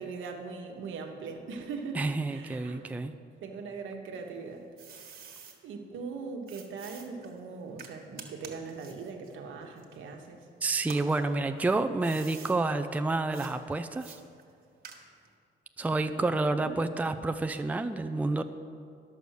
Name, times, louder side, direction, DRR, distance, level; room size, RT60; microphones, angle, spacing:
voice 1, 0.0-2.0 2.3-2.8 3.4-4.7 5.6-10.5 16.1-16.8, right 4 dB, 80° right, 3 dB, 1.2 m, -40 dB
voice 2, 2.0-3.1 10.6-14.2 15.8-18.4, right 3 dB, 10° right, 9 dB, 0.4 m, -29 dB
sound 1, 4.1-5.6 6.5-10.4 10.8-12.6 13.3-13.5 14.0-15.3, right 5 dB, 50° right, 1.5 m, -49 dB
11.0 x 6.9 x 6.5 m, 2.3 s
cardioid pair, 90°, 20 cm